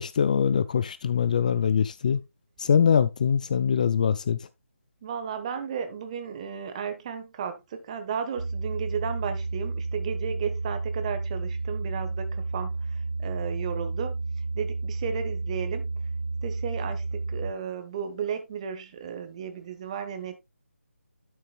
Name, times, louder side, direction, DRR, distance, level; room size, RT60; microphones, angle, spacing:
voice 1, 0.0-2.2 2.6-4.4, left 7 dB, 30° left, 0.4 m, -23 dB
voice 2, 5.0-14.2 14.5-15.9 16.4-20.4, right 7 dB, 25° right, 1.2 m, -34 dB
sound 1, 8.4-17.5, right 3 dB, 90° right, 0.4 m, -31 dB
12.0 x 6.6 x 2.3 m
figure-of-eight pair, 160°, 8 cm